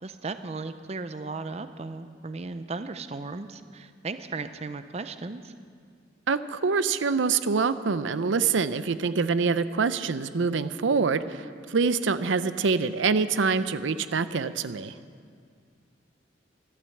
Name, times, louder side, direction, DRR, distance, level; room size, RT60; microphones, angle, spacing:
voice 1, 0.0-5.5, right 3 dB, 35° right, 11 dB, 0.5 m, -36 dB
voice 2, 6.3-14.9, right 5 dB, 85° right, 13 dB, 0.6 m, -25 dB
12.0 x 12.0 x 7.7 m, 2.1 s
head